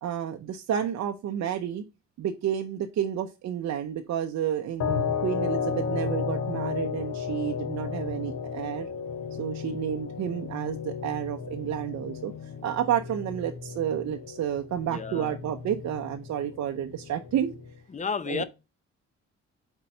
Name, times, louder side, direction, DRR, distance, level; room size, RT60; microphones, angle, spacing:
voice 1, 0.0-1.9 2.2-8.9 9.4-12.3 12.6-17.5 18.3-18.4, right 9 dB, 60° right, 0.6 m, -30 dB
sound 1, 4.8-17.8, left 6 dB, 60° left, 0.9 m, -34 dB
voice 2, 14.9-15.4 17.9-18.4, left 5 dB, 25° left, 0.6 m, -32 dB
4.4 x 4.3 x 5.2 m
cardioid pair, 90°, 30 cm